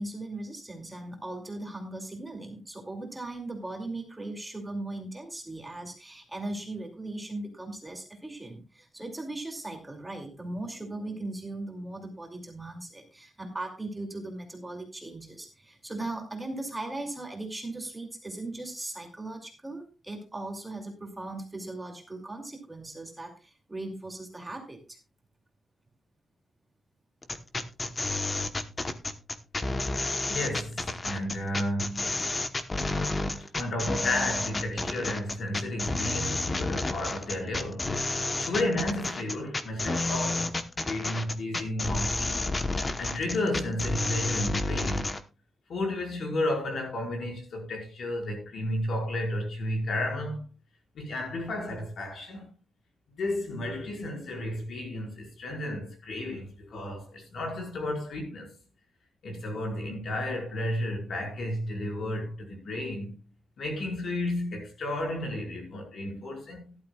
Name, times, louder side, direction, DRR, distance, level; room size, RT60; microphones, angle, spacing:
voice 1, 0.0-25.0, right 2 dB, 10° right, 2.6 m, -38 dB
sound 1, 27.2-45.2, left 2 dB, 20° left, 1.0 m, -30 dB
voice 2, 30.3-32.2 33.5-40.5 40.8-42.6 43.0-45.2 45.7-50.4 50.9-52.5 53.2-58.5 59.2-63.2 63.6-66.8, left 1 dB, 60° left, 5.0 m, -32 dB
17.0 x 12.0 x 2.4 m
wide cardioid pair, 165°, 0 cm